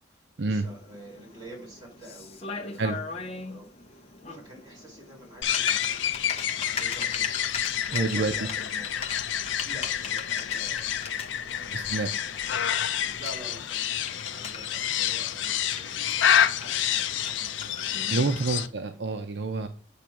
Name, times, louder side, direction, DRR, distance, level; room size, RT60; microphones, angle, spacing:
voice 1, 0.1-6.2 6.6-8.9 9.6-16.9 17.2-18.7, right 1 dB, 25° right, -2 dB, 4.3 m, -48 dB
Typing, 0.6-18.7, left 5 dB, 30° left, 0.9 m, -40 dB
sound 1, 5.4-18.7, left 9 dB, 85° left, 0.5 m, -28 dB
voice 2, 7.9-8.3 11.7-12.1 18.1-19.7, right 3 dB, 65° right, 7 dB, 0.6 m, -27 dB
8.4 x 3.1 x 5.9 m, 0.38 s
head